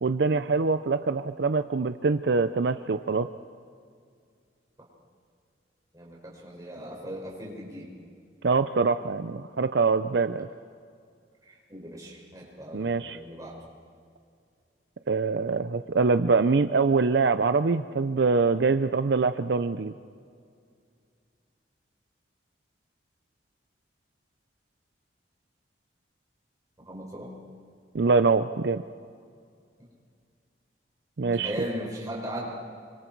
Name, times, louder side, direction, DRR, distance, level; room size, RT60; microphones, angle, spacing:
voice 1, 0.0-3.3 8.4-10.5 12.7-13.2 15.1-19.9 27.9-28.8 31.2-31.5, right 4 dB, 70° right, 11 dB, 0.5 m, -24 dB
voice 2, 5.9-7.9 11.5-13.6 26.8-27.3 31.2-32.5, equal, 20° right, -4 dB, 6.2 m, -38 dB
28.0 x 25.5 x 4.6 m, 2.2 s
head